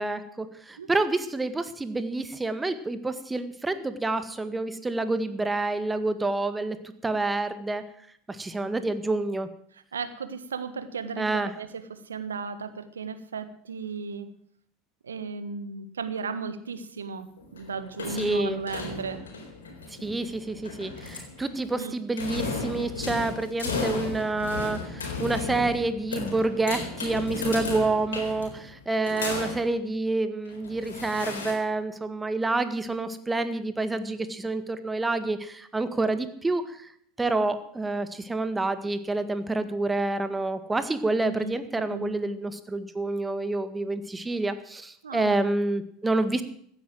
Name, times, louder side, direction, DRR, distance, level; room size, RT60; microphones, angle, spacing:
voice 1, 0.0-7.8 8.3-9.5 11.2-11.5 18.1-18.6 19.9-36.9 37.2-46.4, right 2 dB, 15° right, 11 dB, 1.8 m, -28 dB
voice 2, 9.9-14.3 15.0-19.2 21.8-21.9 29.1-29.5 41.2-42.1 45.0-45.4, right 5 dB, 85° right, 11 dB, 1.4 m, -35 dB
sound 1, 17.4-21.8 22.2-29.7 30.5-31.5, left 3 dB, 85° left, 4.1 m, -35 dB
15.5 x 9.8 x 7.8 m, 0.66 s
hypercardioid pair, 80°, 0 cm